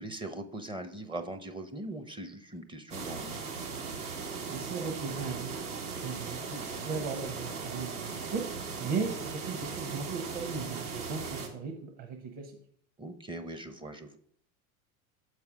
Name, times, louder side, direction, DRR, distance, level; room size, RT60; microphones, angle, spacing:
voice 1, 0.0-3.4 13.0-14.2, right 2 dB, 10° right, 7 dB, 0.5 m, -40 dB
sound 1, 2.9-11.5, right 5 dB, 80° right, 1.8 m, -38 dB
voice 2, 4.5-8.5 8.8-12.5, right 5 dB, 45° right, 4 dB, 1.2 m, -37 dB
7.0 x 4.8 x 4.9 m, 0.65 s
hypercardioid pair, 85°, 43 cm